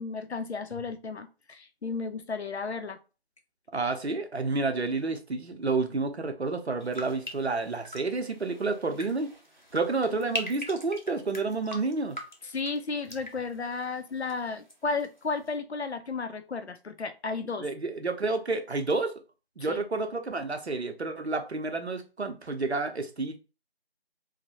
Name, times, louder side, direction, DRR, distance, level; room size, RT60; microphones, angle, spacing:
voice 1, 0.0-3.0 12.5-17.7 19.7-19.8, left 4 dB, 85° left, 0.6 m, -33 dB
voice 2, 3.7-9.3 9.7-12.2 17.6-19.1 19.6-23.4, right 3 dB, 80° right, 0.7 m, -30 dB
sound 1, 6.8-14.7 15.0-15.5, left 1 dB, 45° left, 0.6 m, -42 dB
3.1 x 2.1 x 2.8 m
figure-of-eight pair, 175°, 32 cm